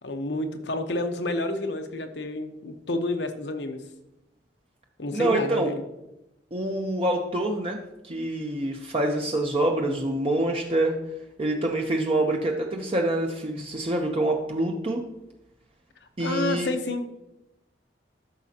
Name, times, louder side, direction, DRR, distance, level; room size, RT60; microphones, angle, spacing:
voice 1, 0.0-3.8 5.0-5.8 16.2-17.1, left 2 dB, 75° left, 6 dB, 1.0 m, -29 dB
voice 2, 5.1-5.7 6.5-11.0 11.4-15.0 16.2-16.7, right 1 dB, 35° right, 1 dB, 0.7 m, -26 dB
13.5 x 6.2 x 2.8 m, 0.91 s
head